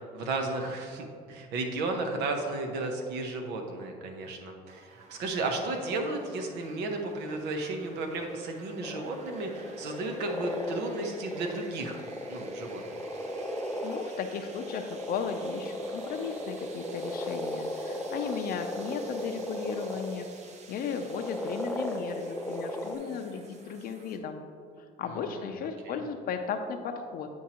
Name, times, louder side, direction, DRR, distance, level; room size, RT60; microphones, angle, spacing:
voice 1, 0.0-12.0 12.3-12.8 25.1-25.4 25.8-26.0, right 2 dB, 85° right, 4 dB, 0.8 m, -34 dB
sound 1, 4.7-24.2, right 4 dB, 40° right, 0.7 m, -52 dB
sound 2, 8.8-20.3 20.9-22.9, left 1 dB, 5° left, 0.6 m, -37 dB
voice 2, 13.8-20.3 20.7-24.4 24.8-27.3, left 6 dB, 60° left, 5 dB, 0.5 m, -35 dB
9.5 x 4.5 x 2.9 m, 2.2 s
cardioid pair, 110°, 17 cm